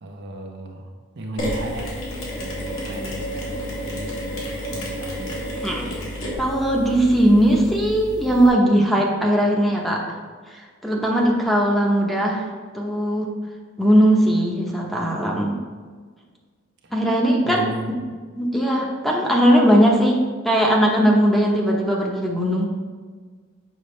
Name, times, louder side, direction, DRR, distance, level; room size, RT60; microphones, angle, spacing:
voice 1, 0.0-1.9 2.4-5.4 16.8-16.9 17.4-17.9, right 1 dB, 60° right, 2 dB, 0.8 m, -35 dB
Mechanisms, 1.4-8.5, equal, 90° left, 1.7 m, -31 dB
voice 2, 6.4-10.0 10.5-12.5 12.7-13.3 13.8-15.6 16.9-17.7 18.4-20.2 20.4-22.7, equal, ahead, -2 dB, 0.8 m, -19 dB
6.9 x 5.3 x 3.2 m, 1.5 s
head